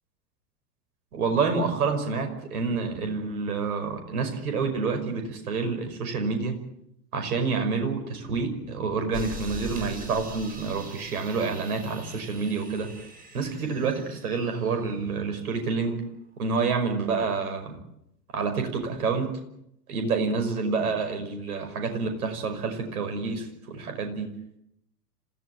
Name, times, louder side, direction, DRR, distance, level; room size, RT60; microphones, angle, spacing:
voice 1, 1.1-6.6 7.1-12.9 13.3-16.0 16.4-17.8 18.3-19.3 19.9-24.3, right 4 dB, 60° right, 5 dB, 5.7 m, -28 dB
sound 1, 9.1-15.6, right 1 dB, 15° right, 5.8 m, -42 dB
27.0 x 16.5 x 8.9 m, 0.80 s
figure-of-eight pair, 95°, 48 cm